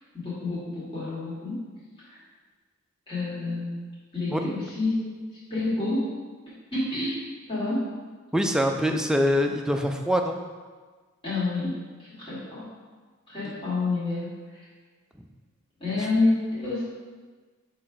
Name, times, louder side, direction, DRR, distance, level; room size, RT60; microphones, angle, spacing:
voice 1, 0.1-1.6 2.0-2.2 3.1-3.8 4.1-5.1 5.5-6.1 6.7-7.2 7.5-7.9 11.2-12.7 13.3-14.7 15.8-16.8, left 2 dB, 25° left, -11 dB, 1.8 m, -28 dB
voice 2, 8.3-10.4 13.5-13.6 15.2-15.3, equal, 5° right, 4 dB, 0.3 m, -24 dB
6.2 x 3.2 x 4.8 m, 1.4 s
head